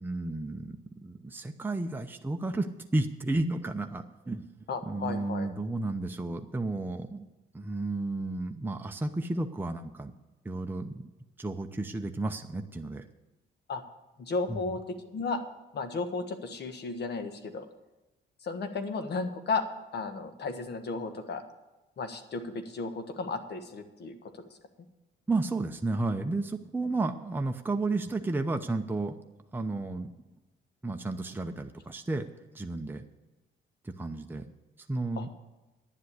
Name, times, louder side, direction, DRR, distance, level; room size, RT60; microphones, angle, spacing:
voice 1, 0.0-4.4 4.9-7.2 7.5-10.1 10.4-11.1 11.4-13.0 14.5-14.8 25.3-29.2 29.5-30.1 30.8-32.3 32.5-33.0 33.8-34.4 34.9-35.3, right 2 dB, 10° right, 4 dB, 0.8 m, -32 dB
voice 2, 4.7-5.5 13.7-13.8 14.2-15.4 15.7-17.7 18.4-19.6 19.9-21.4 22.0-24.3 35.2-35.3, left 4 dB, 55° left, 8 dB, 1.4 m, -34 dB
10.5 x 7.5 x 8.2 m, 1.1 s
cardioid pair, 90°, 20 cm